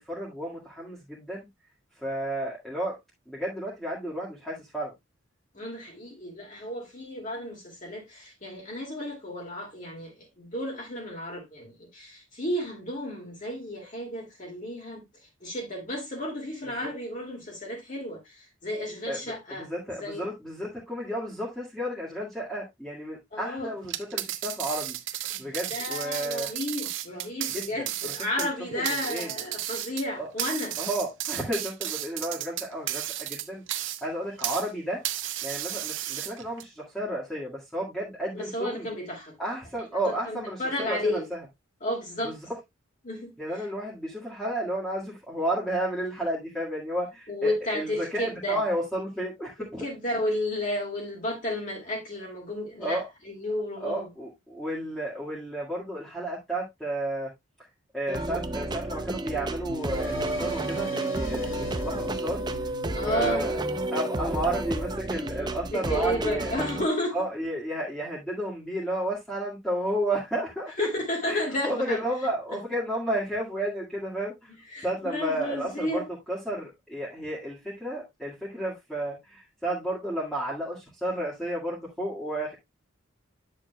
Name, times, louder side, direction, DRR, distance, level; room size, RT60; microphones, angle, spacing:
voice 1, 0.0-1.5 1.9-3.0 3.3-4.9 16.8-16.9 19.1-26.5 27.5-28.1 28.4-28.5 28.9-29.3 30.2-30.3 30.8-35.0 35.4-38.9 39.4-41.4 42.2-42.4 43.4-49.9 52.8-53.1 53.8-57.3 57.9-62.4 63.0-63.6 63.9-66.6 67.1-70.9 71.3-74.5 74.8-76.0 76.3-82.6, right 1 dB, ahead, 1.8 m, -32 dB
voice 2, 5.5-19.7 20.0-20.3 23.3-23.7 25.3-30.8 38.4-39.4 40.0-41.3 41.8-42.4 43.0-43.4 47.3-48.6 49.6-54.1 62.9-63.5 65.7-67.2 70.8-72.0 74.5-76.0, left 1 dB, 35° left, 2.4 m, -32 dB
sound 1, 23.8-34.7 35.0-36.6, right 13 dB, 60° right, 0.7 m, -33 dB
sound 2, 58.1-66.9, right 2 dB, 20° right, 0.5 m, -31 dB
sound 3, 59.7-64.5, right 2 dB, 65° left, 2.1 m, -42 dB
10.0 x 6.6 x 2.2 m
head